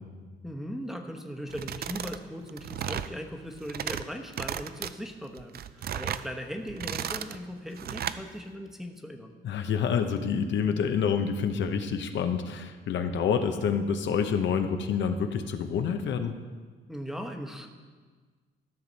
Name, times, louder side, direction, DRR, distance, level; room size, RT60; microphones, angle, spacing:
voice 1, 0.4-9.3 16.9-17.7, equal, ahead, 2 dB, 1.0 m, -39 dB
sound 1, 1.5-2.2 2.5-3.1 3.5-4.0 4.3-4.9 5.4-6.3 6.7-7.4 7.8-8.2, right 9 dB, 50° right, 0.4 m, -34 dB
voice 2, 9.4-16.3, left 6 dB, 70° left, 7 dB, 0.8 m, -27 dB
13.5 x 6.2 x 4.1 m, 1.5 s
cardioid pair, 90°, 20 cm